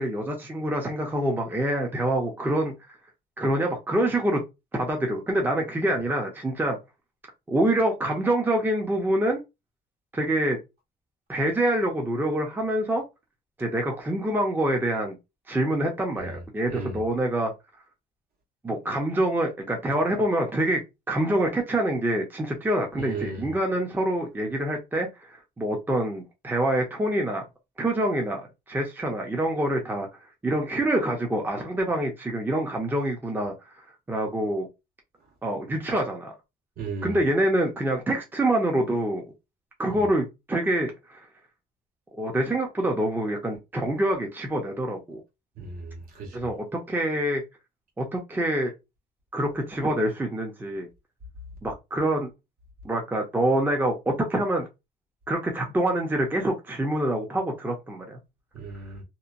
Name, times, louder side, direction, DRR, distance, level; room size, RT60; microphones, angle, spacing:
voice 1, 0.0-2.7 3.4-4.4 4.7-6.8 7.5-9.4 10.1-10.6 11.3-13.1 13.6-15.2 15.5-17.5 18.6-20.8 21.1-27.4 27.8-30.1 30.4-34.7 35.4-36.3 37.0-39.2 39.8-41.3 42.2-45.2 46.3-47.4 48.0-48.7 49.3-50.9 51.6-52.3 52.8-54.7 55.3-58.2, right 1 dB, 10° right, 0.6 m, -26 dB
voice 2, 16.7-17.0 23.0-23.5 36.8-37.1 45.6-46.4 58.5-59.0, right 4 dB, 65° right, 1.4 m, -35 dB
2.9 x 2.1 x 2.5 m
cardioid pair, 110°, 17 cm